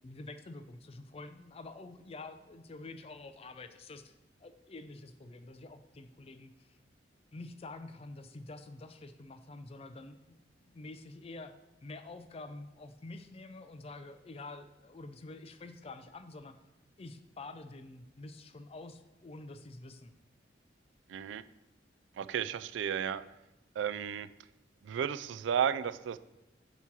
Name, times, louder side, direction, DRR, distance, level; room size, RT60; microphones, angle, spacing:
voice 1, 0.0-4.1 4.4-6.8 7.3-11.5 11.8-16.6 17.0-20.1, left 2 dB, 35° left, 10 dB, 0.4 m, -48 dB
voice 2, 21.1-21.4 22.2-23.2 23.8-24.3 24.8-26.2, right 8 dB, 90° right, 14 dB, 0.3 m, -33 dB
8.0 x 3.0 x 5.9 m, 0.96 s
head